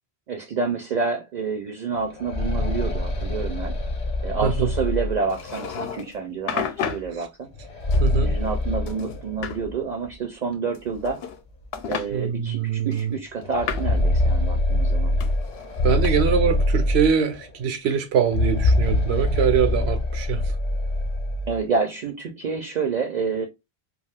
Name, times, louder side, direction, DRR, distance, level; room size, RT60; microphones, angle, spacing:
voice 1, 0.3-3.7 4.2-7.5 8.2-11.2 11.9-15.2 15.9-16.0 21.5-23.5, right 5 dB, 55° right, 0.6 m, -28 dB
sound 1, 2.0-5.8 7.5-9.7 10.0-10.1 11.0-11.1 11.6-11.7 13.4-17.5 18.2-21.6, left 1 dB, 45° left, 0.8 m, -24 dB
voice 2, 4.4-4.7 7.1-7.3 8.0-8.3 12.1-13.1 15.8-20.5, right 7 dB, 90° right, 0.9 m, -23 dB
sound 2, 5.3-6.1 6.5-7.1 7.9-8.6 8.9-9.6 10.7-11.4 11.7-12.1 12.9-14.0 15.2-16.1, left 7 dB, 75° left, 0.8 m, -32 dB
2.4 x 2.3 x 3.3 m
omnidirectional pair, 1.1 m